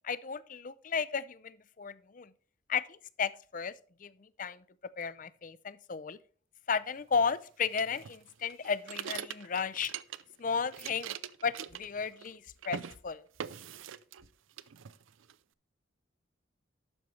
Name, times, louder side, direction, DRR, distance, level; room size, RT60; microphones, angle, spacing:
voice 1, 0.0-2.3 2.7-3.7 4.0-4.6 5.0-6.2 6.7-9.9 10.4-11.2 11.4-12.8 13.0-13.3, left 6 dB, 40° left, 0.5 m, -34 dB
sound 1, 7.8-10.4 10.7-12.4 12.6-13.0 13.4-14.3 14.6-15.3, right 9 dB, 80° right, 0.5 m, -42 dB
11.5 x 8.0 x 3.2 m
head